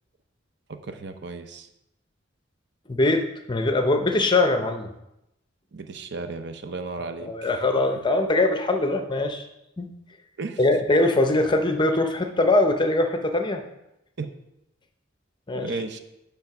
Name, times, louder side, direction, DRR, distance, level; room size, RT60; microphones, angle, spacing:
voice 1, 0.7-1.7 5.7-7.5 10.4-10.6 14.2-14.3 15.5-16.0, right 3 dB, 60° right, 7 dB, 0.7 m, -34 dB
voice 2, 2.9-4.9 7.2-9.5 9.8-10.0 10.6-13.6 15.5-15.7, left 2 dB, 25° left, 5 dB, 0.7 m, -22 dB
10.0 x 3.5 x 5.9 m, 0.86 s
head